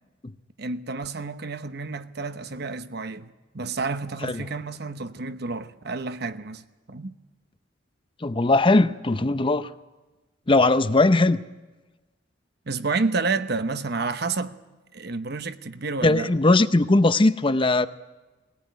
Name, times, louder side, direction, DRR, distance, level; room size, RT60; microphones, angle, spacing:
voice 1, 0.6-6.6 6.9-7.1 12.7-14.6 14.9-16.3, right 3 dB, 60° right, 1.0 m, -30 dB
voice 2, 8.2-9.7 10.5-11.4 16.0-17.9, left 2 dB, 25° left, 0.7 m, -19 dB
20.5 x 17.5 x 9.4 m
head